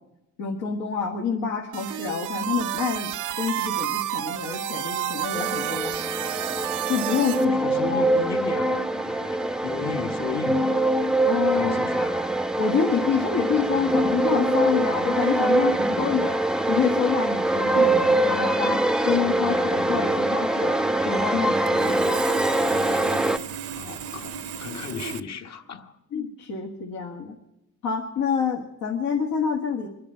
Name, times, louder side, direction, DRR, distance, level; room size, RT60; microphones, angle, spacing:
voice 1, 0.4-3.1 3.4-6.0 6.9-8.1 11.3-11.8 12.6-16.4 16.7-20.8 21.0-22.2 26.1-27.3 27.8-29.9, left 6 dB, 85° left, 1.7 m, -27 dB
sound 1, 1.7-7.4, right 13 dB, 90° right, 0.7 m, -30 dB
sound 2, 5.3-23.4, right 1 dB, ahead, 0.5 m, -23 dB
voice 2, 7.4-10.9 11.5-12.3 23.7-26.0, left 6 dB, 60° left, 1.6 m, -35 dB
Sawing, 21.7-25.2, right 8 dB, 55° right, 0.7 m, -36 dB
24.0 x 10.5 x 5.6 m
cardioid pair, 90°, 30 cm